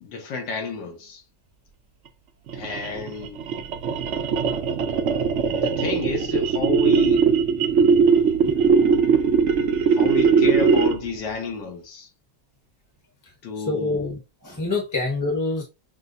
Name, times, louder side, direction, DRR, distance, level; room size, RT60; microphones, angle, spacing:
voice 1, 0.0-1.2 2.5-3.4 5.5-7.2 9.9-12.1 13.4-14.1, left 4 dB, 80° left, 1.7 m, -31 dB
sound 1, 2.5-11.2, right 5 dB, 80° right, 0.6 m, -20 dB
voice 2, 13.6-15.6, left 3 dB, 15° left, 0.8 m, -26 dB
6.3 x 2.2 x 2.6 m
omnidirectional pair, 2.0 m